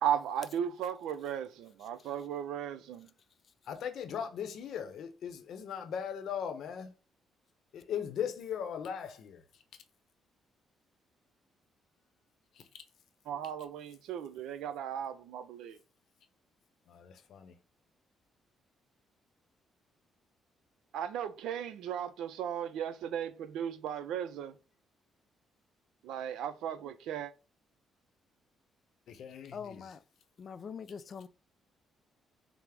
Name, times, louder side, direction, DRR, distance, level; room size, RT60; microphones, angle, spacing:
voice 1, 0.0-3.1 13.3-15.8 20.9-24.6 26.0-27.3, right 9 dB, 85° right, 0.4 m, -36 dB
voice 2, 3.7-6.9 7.7-9.4 16.9-17.5 29.1-29.8, left 8 dB, 70° left, 0.7 m, -38 dB
voice 3, 29.5-30.0 30.4-31.3, left 6 dB, 50° left, 0.4 m, -43 dB
5.8 x 2.0 x 3.4 m
cardioid pair, 90°, 0 cm